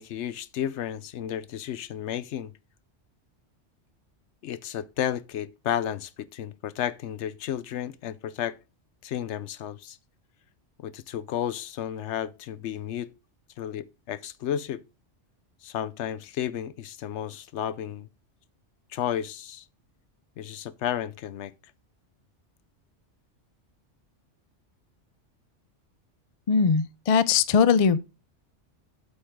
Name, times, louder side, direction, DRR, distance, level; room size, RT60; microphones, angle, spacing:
voice 1, 0.0-2.5 4.4-8.6 9.0-10.0 10.8-13.1 13.6-14.8 15.6-18.1 18.9-19.6 20.4-21.5, left 10 dB, 75° left, 0.9 m, -32 dB
voice 2, 26.5-28.0, left 6 dB, 45° left, 0.4 m, -20 dB
8.6 x 7.7 x 3.6 m
omnidirectional pair, 1.2 m